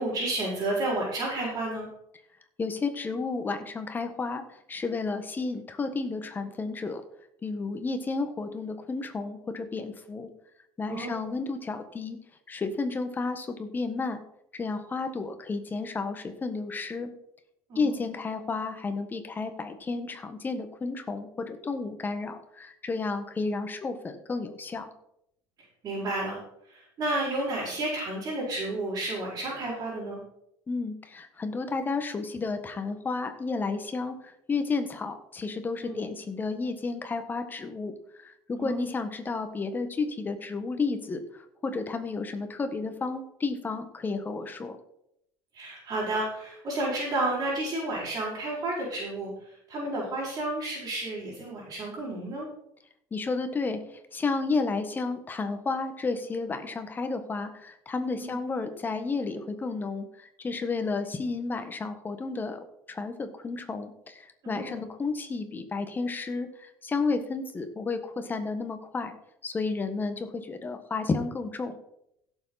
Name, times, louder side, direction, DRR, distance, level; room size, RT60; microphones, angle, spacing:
voice 1, 0.0-1.9 10.9-11.2 17.7-18.0 25.8-30.2 35.8-36.0 38.6-38.9 45.5-52.5 58.2-58.4 64.4-64.8, right 2 dB, 40° right, -8 dB, 5.6 m, -31 dB
voice 2, 2.6-4.4 4.7-7.0 7.4-10.3 10.8-12.2 12.5-14.2 14.5-17.1 17.7-24.9 30.7-34.1 34.5-37.9 38.2-44.8 53.1-53.8 54.1-62.6 62.9-69.2 69.4-71.8, left 4 dB, 20° left, 7 dB, 1.4 m, -32 dB
16.0 x 7.2 x 4.2 m, 0.77 s
cardioid pair, 125°, 9 cm